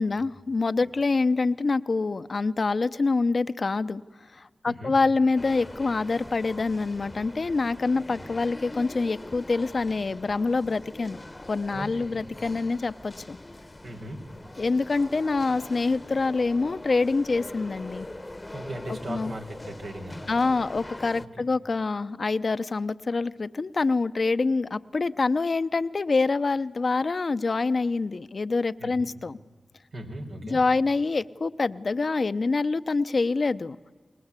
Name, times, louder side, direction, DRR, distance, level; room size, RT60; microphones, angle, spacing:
voice 1, 0.0-4.0 4.3-11.2 11.5-13.4 14.6-18.1 18.9-19.3 20.3-29.4 30.4-33.8, left 3 dB, 60° left, 12 dB, 0.8 m, -26 dB
sound 1, 5.4-21.3, left 1 dB, 25° left, 1.1 m, -43 dB
voice 2, 11.7-12.2 13.8-14.2 18.5-20.3 21.2-21.3 28.8-29.1 29.9-30.6, right 1 dB, 80° right, 1 dB, 3.9 m, -38 dB
30.0 x 21.0 x 8.3 m, 1.4 s
cardioid pair, 40°, 0 cm